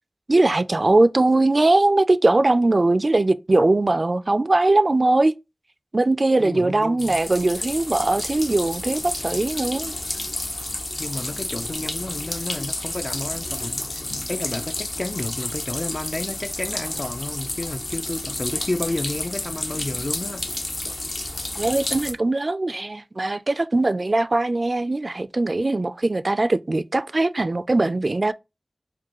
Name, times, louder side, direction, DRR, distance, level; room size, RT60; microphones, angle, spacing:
voice 1, 0.3-5.3 5.9-9.9 21.6-28.3, right 2 dB, 55° right, 0.3 m, -20 dB
voice 2, 6.4-7.2 11.0-14.0 14.3-20.5, left 2 dB, 50° left, 0.4 m, -31 dB
sound 1, 7.0-22.1, left 1 dB, 65° left, 0.9 m, -30 dB
4.9 x 2.2 x 2.9 m
wide cardioid pair, 50°, 0 cm